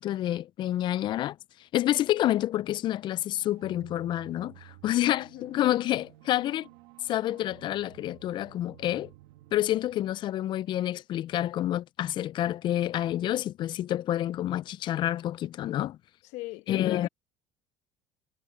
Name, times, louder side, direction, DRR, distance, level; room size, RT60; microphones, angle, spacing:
voice 1, 0.0-1.4 1.7-6.7 7.0-9.1 9.5-16.0 16.7-17.1, left 13 dB, 40° left, 0.4 m, -28 dB
sound 1, 3.4-11.0, right 17 dB, 90° right, 2.2 m, -54 dB
voice 2, 5.1-5.5 16.2-17.1, left 20 dB, 75° left, 1.2 m, -40 dB
cardioid pair, 125°, 12 cm